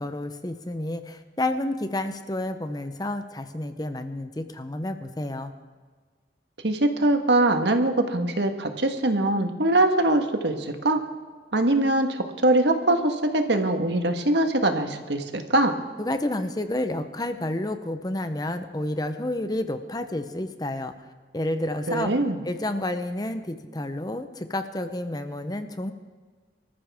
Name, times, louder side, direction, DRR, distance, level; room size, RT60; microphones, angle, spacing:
voice 1, 0.0-5.5 16.0-20.9 21.3-22.1 22.4-25.9, left 1 dB, 20° left, 9 dB, 0.8 m, -30 dB
voice 2, 6.6-11.0 11.5-15.7 21.9-22.4, right 2 dB, 80° right, 6 dB, 1.5 m, -22 dB
25.0 x 14.0 x 3.6 m, 1.5 s
head